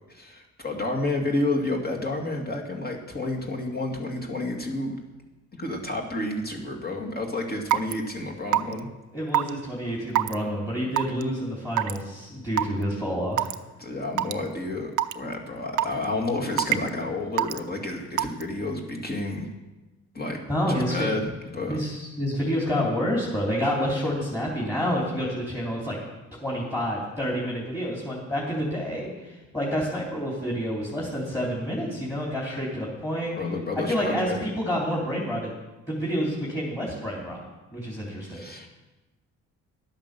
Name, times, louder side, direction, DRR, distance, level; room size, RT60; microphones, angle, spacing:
voice 1, 0.1-5.0 5.5-8.9 13.8-19.5 20.1-20.4 20.7-21.8 33.4-34.5 38.2-38.7, left 2 dB, 30° left, 1 dB, 2.2 m, -30 dB
Raindrop / Water tap faucet / Drip, 7.7-7.9 8.5-8.8 9.3-9.5 10.1-10.3 11.0-11.2 11.8-12.0 12.6-12.7 13.4-13.5 14.2-14.3 15.0-15.1 15.8-16.0 16.6-16.9 17.4-17.6 18.2-18.4, right 13 dB, 80° right, 0.6 m, -22 dB
voice 2, 9.1-13.5 20.5-21.1 21.7-26.0 26.4-33.3 33.9-35.6 35.9-37.4 37.7-38.4, equal, 10° left, -5 dB, 3.5 m, -28 dB
11.5 x 8.9 x 6.8 m, 1.1 s
cardioid pair, 90°, 30 cm